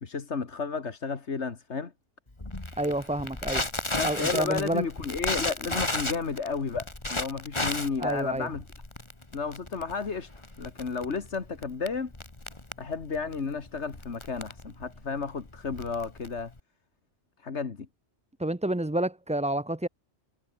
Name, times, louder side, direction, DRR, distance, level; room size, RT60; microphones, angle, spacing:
voice 1, 0.0-1.9 4.0-8.6 9.3-10.3 10.6-12.1 12.8-16.5 17.4-17.9, left 5 dB, 80° left, 2.1 m, -32 dB
Crackle, 2.4-16.6, left 2 dB, 25° left, 2.4 m, -34 dB
voice 2, 2.8-3.6 4.0-4.8 8.0-8.5 18.4-19.9, right 1 dB, 10° right, 0.5 m, -29 dB
omnidirectional pair, 1.1 m